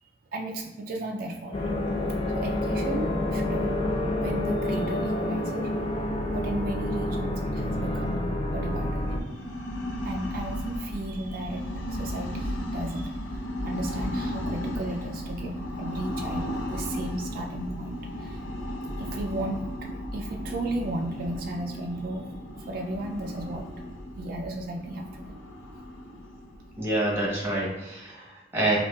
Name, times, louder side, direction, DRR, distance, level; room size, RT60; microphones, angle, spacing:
voice 1, 0.3-1.6 2.3-3.8 4.2-5.7 6.3-9.3 10.0-18.5 19.0-22.3 22.6-23.6 24.1-25.4, right 1 dB, 50° right, 0 dB, 0.3 m, -35 dB
sound 1, 1.5-9.2, left 1 dB, 30° left, 0.4 m, -28 dB
sound 2, 9.0-27.7, equal, 90° left, 0.6 m, -35 dB
voice 2, 26.8-28.8, right 1 dB, 10° right, -4 dB, 1.0 m, -27 dB
5.2 x 2.4 x 2.3 m, 1.1 s
head